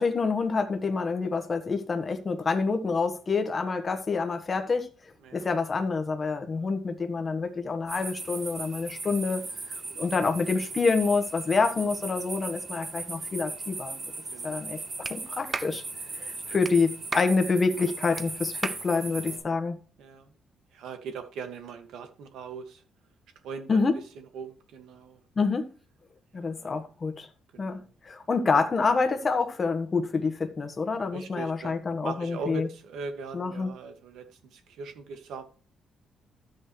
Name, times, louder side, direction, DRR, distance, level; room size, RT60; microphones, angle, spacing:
voice 1, 0.0-4.9 5.3-9.4 9.9-14.0 14.4-14.8 15.1-15.8 16.2-19.8 23.7-24.0 25.4-25.7 26.3-27.3 27.6-32.7 33.3-33.7, left 4 dB, 25° left, 1.4 m, -27 dB
sound 1, 7.9-19.4, right 3 dB, 40° right, 6.3 m, -38 dB
voice 2, 14.3-14.9 17.1-17.2 19.1-19.4 20.0-20.3 20.7-22.8 23.4-23.8 24.2-25.2 26.3-26.7 27.5-27.9 31.1-35.4, right 5 dB, 75° right, 2.1 m, -41 dB
Clapping, 15.0-15.2 15.5-15.7 16.6-16.8 17.1-17.3 18.2-18.3 18.6-18.8, right 3 dB, 25° right, 0.8 m, -33 dB
13.0 x 8.5 x 3.3 m
cardioid pair, 165°, 0 cm